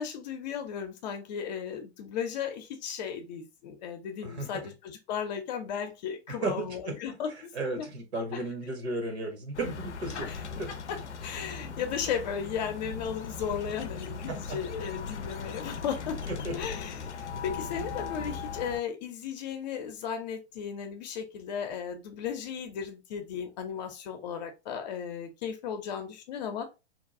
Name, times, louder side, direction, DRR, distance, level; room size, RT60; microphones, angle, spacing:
voice 1, 0.0-7.5 7.8-7.9 8.3-8.4 10.2-10.4 10.9-16.2 16.5-26.7, left 7 dB, 40° left, 0.6 m, -35 dB
voice 2, 4.2-4.7 6.3-7.0 7.5-10.3 10.6-10.7 14.3-14.6 16.3-16.5, right 2 dB, 70° right, 1.2 m, -34 dB
sound 1, 9.5-18.8, left 5 dB, 85° left, 0.5 m, -38 dB
2.9 x 2.2 x 2.5 m
figure-of-eight pair, 105°, 34 cm